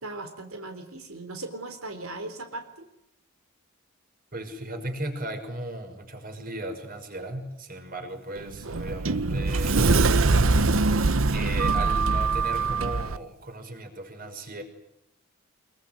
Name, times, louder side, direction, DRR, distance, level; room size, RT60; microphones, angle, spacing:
voice 1, 0.0-2.9, right 2 dB, 90° right, 6 dB, 3.9 m, -38 dB
voice 2, 4.3-9.9 11.3-14.6, right 1 dB, 45° right, 6 dB, 6.1 m, -36 dB
Sliding door, 8.4-13.2, right 3 dB, 70° right, 1.0 m, -23 dB
25.0 x 23.5 x 9.3 m, 0.81 s
head